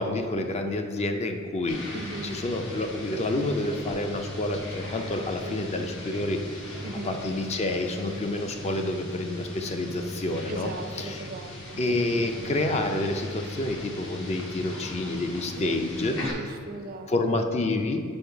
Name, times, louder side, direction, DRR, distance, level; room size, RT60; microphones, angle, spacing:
voice 1, 0.0-1.8 2.2-6.4 6.6-6.8 7.0-10.7 11.0-11.3 11.8-16.2 17.1-18.0, left 2 dB, 30° left, 5 dB, 0.4 m, -28 dB
sound 1, 1.7-16.3, left 1 dB, 65° left, 1.1 m, -38 dB
voice 2, 1.9-2.4 5.4-5.7 6.8-7.1 10.5-11.8 15.6-15.9 16.2-17.4, right 3 dB, 45° right, 6 dB, 0.4 m, -38 dB
5.3 x 4.7 x 4.6 m, 2.2 s
head